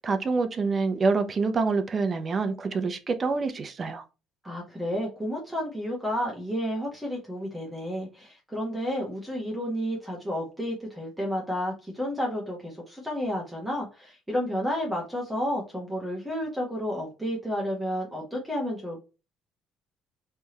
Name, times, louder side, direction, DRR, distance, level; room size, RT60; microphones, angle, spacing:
voice 1, 0.0-4.0, right 4 dB, 35° right, 0.7 m, -26 dB
voice 2, 4.4-19.0, equal, 5° right, 1.5 m, -31 dB
3.4 x 3.4 x 2.9 m
cardioid pair, 110°, 0 cm